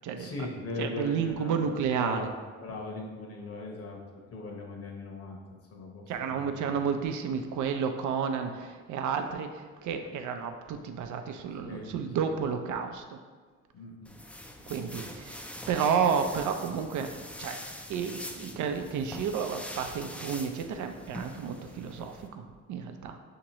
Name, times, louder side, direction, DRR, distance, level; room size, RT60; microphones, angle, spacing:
voice 1, 0.0-5.4 5.7-6.8 11.6-11.9 12.2-12.4 13.7-14.1 14.8-15.1, left 2 dB, 50° left, 0 dB, 1.0 m, -40 dB
voice 2, 0.8-2.2 6.1-13.2 14.7-17.1 17.4-17.6 17.9-23.2, right 6 dB, 75° right, 6 dB, 0.5 m, -31 dB
sound 1, 14.0-22.3, equal, 5° left, 0.3 m, -43 dB
6.2 x 2.9 x 2.9 m, 1.5 s
cardioid pair, 90°, 30 cm